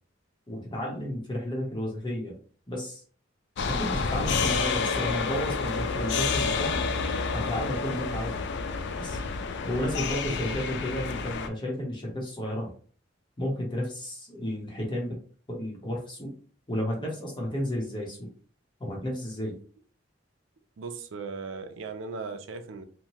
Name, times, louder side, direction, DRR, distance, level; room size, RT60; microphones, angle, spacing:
voice 1, 0.5-2.3 2.7-3.0 3.6-6.8 7.3-8.5 8.9-9.2 9.6-12.7 13.4-15.1 15.5-16.3 16.7-18.3 18.8-19.5, equal, 25° left, 0.9 m, -32 dB
sound 1, 3.6-11.5, left 4 dB, 65° left, 0.3 m, -29 dB
voice 2, 10.3-10.6 20.8-22.8, right 4 dB, 90° right, 0.4 m, -38 dB
3.0 x 2.2 x 2.8 m
head